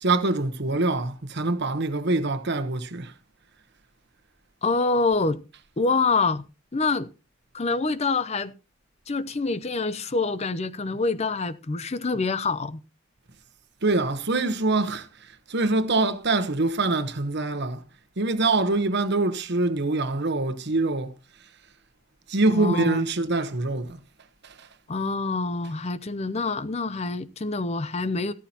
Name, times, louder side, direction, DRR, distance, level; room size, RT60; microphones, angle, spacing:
voice 1, 0.0-3.1 13.8-15.1 15.5-17.8 18.2-21.1 22.3-24.0 24.6-24.7, right 2 dB, 55° right, 1.1 m, -24 dB
voice 2, 4.6-5.4 5.8-6.4 6.7-7.1 7.5-8.5 9.1-12.8 22.5-23.0 24.9-28.3, left 3 dB, 30° left, 0.6 m, -26 dB
14.5 x 13.0 x 2.9 m
head